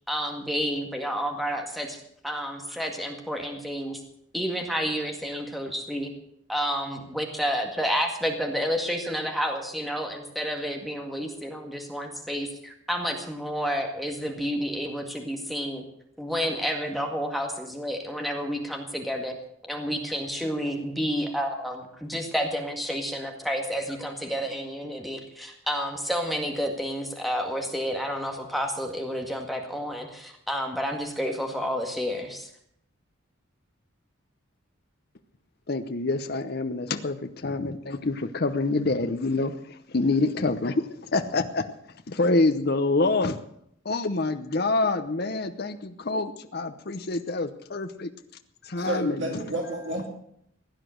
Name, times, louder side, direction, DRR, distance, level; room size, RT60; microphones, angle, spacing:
voice 1, 0.1-2.0 2.2-4.0 4.3-6.1 6.5-15.8 16.2-19.4 19.7-32.5, equal, ahead, 3 dB, 1.9 m, -30 dB
voice 2, 35.7-41.6 42.1-43.4 43.8-48.1 48.6-49.4, left 3 dB, 50° left, 8 dB, 0.8 m, -26 dB
voice 3, 48.8-50.1, right 1 dB, 60° right, 2 dB, 2.3 m, -31 dB
16.5 x 10.0 x 7.7 m, 0.70 s
head